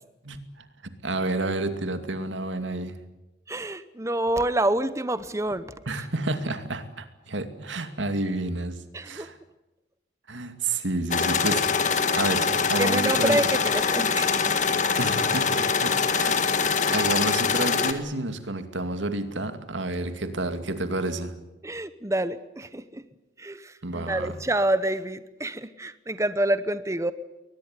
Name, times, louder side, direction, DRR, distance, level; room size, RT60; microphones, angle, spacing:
voice 1, 0.2-3.0 5.9-9.4 10.3-13.4 15.0-16.4 16.9-21.3 23.8-24.4, right 2 dB, 90° right, 2.5 m, -30 dB
voice 2, 3.5-5.7 8.9-9.3 12.8-14.5 21.6-23.0 23.4-27.1, right 1 dB, 15° right, 0.8 m, -27 dB
sound 1, 11.1-17.9, left 5 dB, 40° left, 1.9 m, -24 dB
22.5 x 20.0 x 9.7 m
head